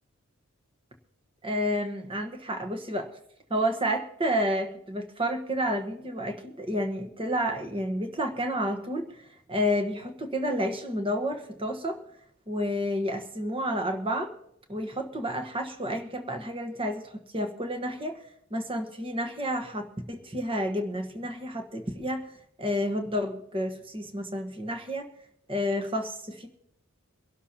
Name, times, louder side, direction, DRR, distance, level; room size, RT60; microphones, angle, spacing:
voice 1, 1.4-3.1 3.5-9.2 9.5-12.0 12.5-14.3 14.7-18.2 18.5-22.3 22.6-25.1 25.5-26.5, equal, 25° right, 5 dB, 1.3 m, -30 dB
24.0 x 12.0 x 2.9 m, 0.72 s
head